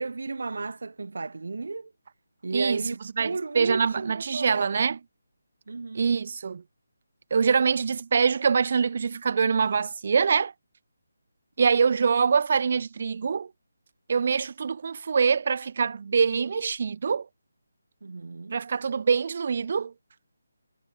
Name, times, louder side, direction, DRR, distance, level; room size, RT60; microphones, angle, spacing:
voice 1, 0.0-1.9 2.4-5.0 5.7-6.1 18.0-18.6, right 3 dB, 70° right, 3.2 m, -33 dB
voice 2, 2.5-2.9 3.2-5.0 5.9-6.6 7.3-10.5 11.6-13.5 14.1-17.3 18.5-19.9, right 6 dB, 40° right, 1.7 m, -24 dB
figure-of-eight pair, 170°, 0 cm